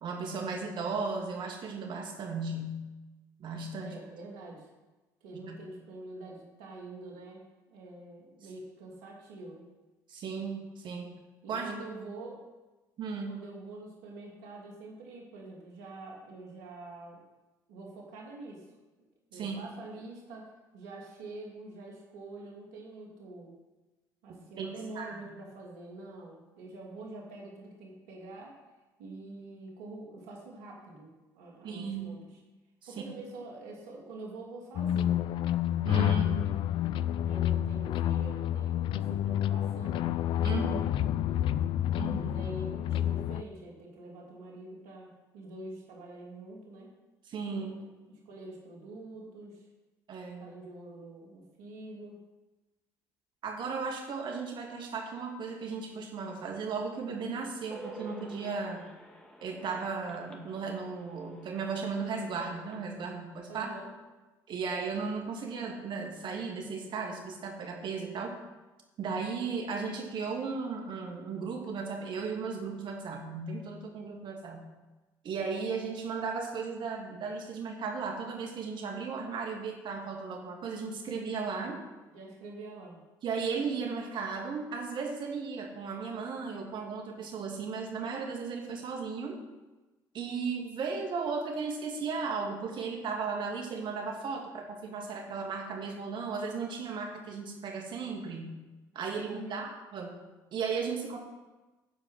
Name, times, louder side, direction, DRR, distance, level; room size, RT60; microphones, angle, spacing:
voice 1, 0.0-2.8 3.4-4.0 5.4-5.6 10.1-11.1 11.5-11.7 13.0-13.4 19.3-19.6 24.6-24.7 25.0-25.2 31.6-32.2 33.0-33.1 35.8-36.4 40.4-40.9 42.0-42.2 47.3-47.8 50.1-50.5 53.4-58.8 59.4-63.8 64.5-68.3 69.0-74.6 75.2-81.8 83.2-89.4 90.1-98.5 98.9-100.2 100.5-101.2, right 5 dB, 55° right, 1 dB, 2.5 m, -35 dB
voice 2, 3.8-4.7 5.2-9.6 11.4-12.5 13.3-17.2 17.7-18.6 19.3-23.5 24.2-28.6 29.0-32.2 32.9-35.3 35.6-35.8 36.1-36.6 37.0-41.0 42.0-46.9 47.5-47.8 48.3-49.7 50.4-52.2 63.5-63.9 81.6-81.8 82.1-83.0 99.2-99.7, right 2 dB, 85° right, -1 dB, 2.6 m, -46 dB
sound 1, 34.8-43.4, left 11 dB, 65° left, 0.4 m, -29 dB
sound 2, 57.7-62.9, right 1 dB, 10° left, 2.2 m, -49 dB
14.0 x 4.9 x 6.4 m, 1.1 s
supercardioid pair, 70°, 9 cm